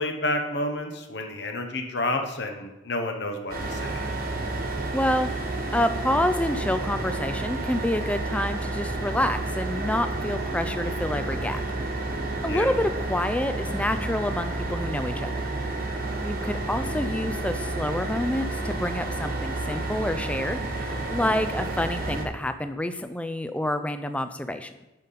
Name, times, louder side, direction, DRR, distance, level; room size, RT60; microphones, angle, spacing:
voice 1, 0.0-4.0 12.5-12.7, left 1 dB, 55° left, 4 dB, 1.0 m, -30 dB
sound 1, 3.5-22.2, right 2 dB, 45° right, 1.2 m, -30 dB
voice 2, 4.9-11.6 12.4-15.3 16.2-24.7, left 1 dB, 5° left, 10 dB, 0.4 m, -28 dB
11.5 x 5.6 x 4.1 m, 1.0 s
head